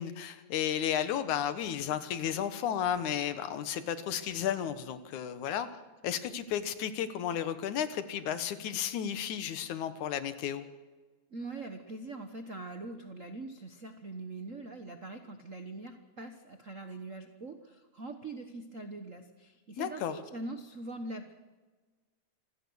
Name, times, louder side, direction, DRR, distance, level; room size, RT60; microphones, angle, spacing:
voice 1, 0.0-5.7 6.0-10.7 19.8-20.2, left 9 dB, 80° left, 12 dB, 2.7 m, -33 dB
voice 2, 11.3-21.3, right 2 dB, 60° right, 7 dB, 0.8 m, -43 dB
27.0 x 16.5 x 6.4 m, 1.3 s
omnidirectional pair, 3.4 m